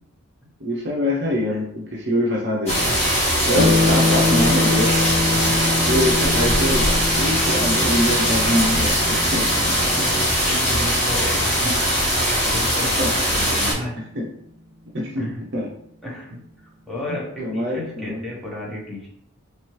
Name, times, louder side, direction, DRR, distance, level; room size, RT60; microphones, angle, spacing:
voice 1, 0.6-3.0 3.5-4.9 5.8-9.8 12.4-13.1 14.1-14.3 14.9-15.3 15.5-15.7 17.1-18.3, left 1 dB, 50° right, -3 dB, 0.6 m, -24 dB
sound 1, 2.7-13.7, equal, 30° left, 1.3 m, -20 dB
voice 2, 3.4-4.4 5.3-5.6 9.4-9.5 10.0-11.8 12.1-14.0 15.2-15.5 16.0-16.4 16.9-19.1, left 1 dB, ahead, -6 dB, 0.9 m, -33 dB
sound 2, 3.5-12.4, left 2 dB, 50° left, 0.8 m, -25 dB
3.3 x 3.0 x 3.0 m, 0.70 s
head